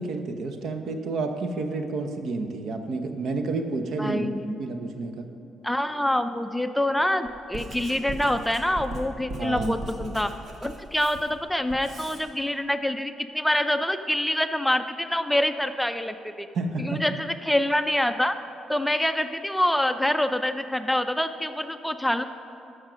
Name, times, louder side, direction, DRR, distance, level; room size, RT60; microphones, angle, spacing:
voice 1, 0.0-4.3 4.6-5.3 9.4-9.9 16.5-17.0, right 3 dB, 70° right, 6 dB, 1.0 m, -30 dB
voice 2, 4.0-4.6 5.6-10.3 10.6-16.5 16.8-18.3 18.7-22.2, left 1 dB, 5° left, 9 dB, 0.5 m, -26 dB
Writing, 7.2-12.2, right 1 dB, 45° right, 1.9 m, -38 dB
13.5 x 6.4 x 6.2 m, 2.7 s
cardioid pair, 90°, 0 cm